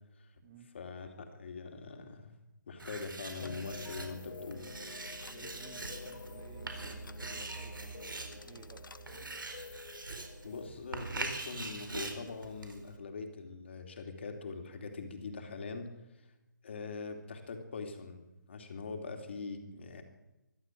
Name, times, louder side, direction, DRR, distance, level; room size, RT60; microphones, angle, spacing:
voice 1, 0.7-2.3 2.7-4.6 10.4-15.9 16.6-18.2 18.5-20.0, left 4 dB, 35° left, 5 dB, 2.9 m, -42 dB
Writing, 2.8-13.0, right 3 dB, 90° right, 4.6 m, -43 dB
sound 1, 3.4-10.7, left 4 dB, 80° left, 1.4 m, -48 dB
voice 2, 5.2-8.9, right 6 dB, 10° right, 7 dB, 0.8 m, -56 dB
24.0 x 12.0 x 9.3 m, 1.0 s
hypercardioid pair, 175°, 11 cm